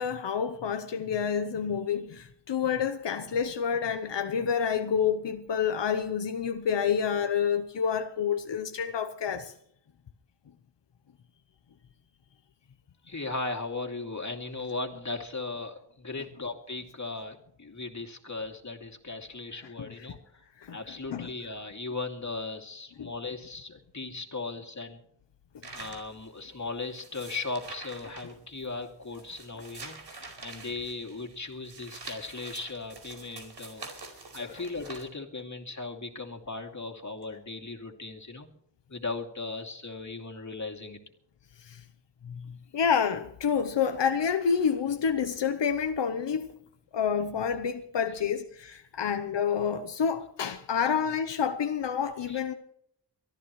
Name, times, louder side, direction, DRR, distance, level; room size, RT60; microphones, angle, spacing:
voice 1, 0.0-9.5 20.6-20.8 21.1-21.3 23.0-23.1 41.6-41.8 42.3-46.5 46.9-52.5, left 7 dB, 80° left, 0.9 m, -28 dB
voice 2, 13.1-20.2 20.7-25.0 25.7-33.9 34.3-38.5 38.9-41.0 52.3-52.4, left 3 dB, 40° left, 2.7 m, -37 dB
sound 1, 25.6-35.1, right 3 dB, 75° right, 4.6 m, -46 dB
23.5 x 14.0 x 3.2 m
wide cardioid pair, 65°, 42 cm